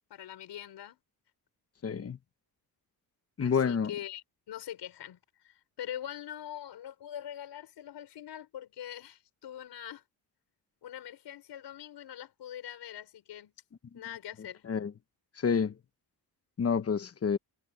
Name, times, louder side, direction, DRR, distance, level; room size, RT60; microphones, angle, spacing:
voice 1, 0.1-1.0 3.4-10.0 10.8-13.5 13.9-14.6, left 11 dB, 80° left, 5.0 m, -43 dB
voice 2, 1.8-2.2 3.4-3.9 14.7-14.9 15.4-15.7 16.6-17.4, left 6 dB, 35° left, 1.2 m, -28 dB
wide cardioid pair, 140°, 41 cm